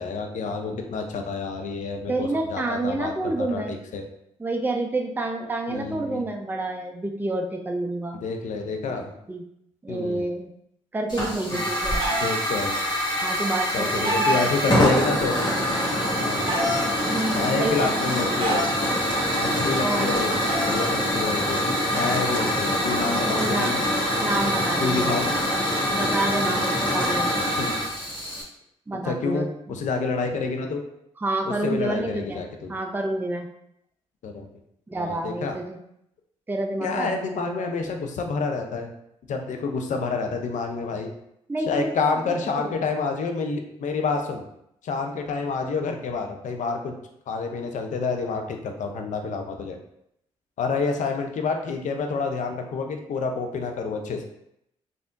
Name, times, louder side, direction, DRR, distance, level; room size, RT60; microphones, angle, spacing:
voice 1, 0.0-4.0 5.7-6.2 8.2-9.0 9.9-10.3 11.5-11.6 12.1-12.8 13.7-15.4 16.2-16.5 17.3-18.7 19.4-23.8 24.8-25.3 27.6-27.7 29.0-30.8 31.6-32.7 34.2-34.5 35.0-35.6 36.8-38.9 39.3-41.1 41.7-44.4 44.8-46.9 47.3-49.8 50.6-54.2, left 4 dB, 60° left, 4 dB, 0.5 m, -28 dB
voice 2, 2.1-3.8 4.4-8.2 8.9-9.4 9.8-10.5 10.9-12.1 13.2-14.2 17.1-18.2 19.8-20.2 23.3-23.8 24.2-25.1 25.9-27.4 28.9-29.5 31.2-32.4 32.7-33.5 34.9-35.8 36.5-37.6 41.5-42.1 42.6-42.8, right 2 dB, 15° right, 3 dB, 0.4 m, -28 dB
Hiss / Fire, 11.1-28.4, equal, 30° left, 1.3 m, -25 dB
Chicken rooster, 11.4-12.3 13.4-14.5 15.4-16.8 17.7-18.8 19.8-20.8 22.0-25.3, right 1 dB, 35° right, 1.0 m, -29 dB
3.4 x 2.5 x 2.5 m, 0.76 s
hypercardioid pair, 45°, 14 cm